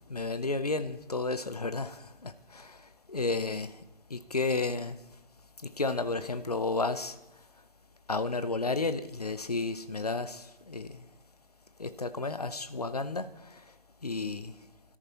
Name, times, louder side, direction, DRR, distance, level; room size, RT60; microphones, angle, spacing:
voice 1, 0.0-3.8 4.1-5.2 5.6-7.5 8.1-11.1 11.8-13.7 14.0-14.6, left 3 dB, 40° left, 0.7 m, -33 dB
24.5 x 14.0 x 3.0 m
figure-of-eight pair, 160°, 30 cm